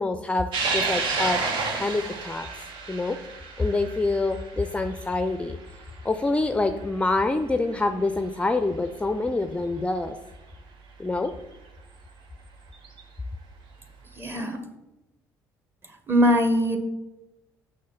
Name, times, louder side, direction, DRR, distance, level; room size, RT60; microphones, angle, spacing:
voice 1, 0.0-1.4 1.7-2.5 2.9-3.2 3.6-5.6 6.0-10.2 11.0-11.3, left 2 dB, 15° left, 9 dB, 0.5 m, -26 dB
sound 1, 0.5-7.2 7.6-7.7 9.0-9.1 11.2-11.3 12.7-13.0, right 4 dB, 65° right, 1.2 m, -31 dB
voice 2, 14.1-14.6 16.1-16.8, equal, 25° right, 6 dB, 1.5 m, -21 dB
6.4 x 5.8 x 5.6 m, 0.99 s
hypercardioid pair, 60°, 9 cm